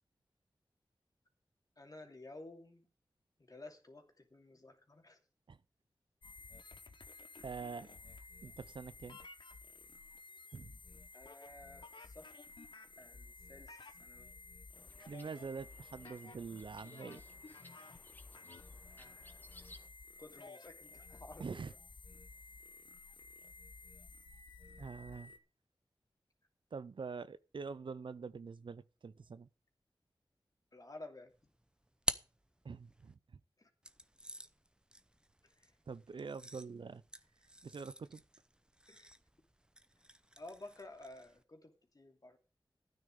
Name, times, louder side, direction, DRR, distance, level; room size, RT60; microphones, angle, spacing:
voice 1, 1.8-2.9 3.5-5.2 11.1-12.3 13.0-14.3 19.0-19.4 20.2-21.6 30.7-31.3 33.6-33.7 35.4-35.7 38.9-39.1 40.4-42.4, left 2 dB, 45° left, 2.6 m, -53 dB
sound 1, 6.2-25.4, left 3 dB, 65° left, 1.3 m, -54 dB
voice 2, 7.4-7.9 8.2-9.2 10.5-10.8 15.1-17.2 21.4-21.7 24.8-25.3 26.7-29.5 32.6-33.4 35.9-37.0 37.6-38.2, right 5 dB, 65° right, 0.6 m, -45 dB
sound 2, 14.7-19.9, left 1 dB, 20° left, 1.8 m, -61 dB
sound 3, 31.3-33.1 33.8-41.4, right 1 dB, 10° right, 0.8 m, -47 dB
12.0 x 9.5 x 5.2 m
cardioid pair, 45°, 9 cm